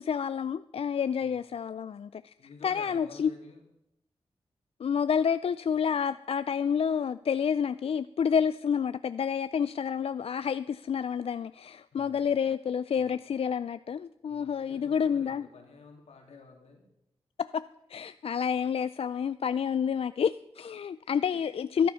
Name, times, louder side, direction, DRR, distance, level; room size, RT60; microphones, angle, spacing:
voice 1, 0.0-2.3 2.6-3.3 4.8-15.5 17.4-17.6 17.9-21.9, left 7 dB, 65° left, 14 dB, 0.4 m, -29 dB
voice 2, 2.4-3.6 11.9-12.2 12.9-13.1 14.3-16.9 21.0-21.5, left 4 dB, 90° left, 1 dB, 2.8 m, -51 dB
13.0 x 11.0 x 5.6 m, 0.83 s
cardioid pair, 50°, 11 cm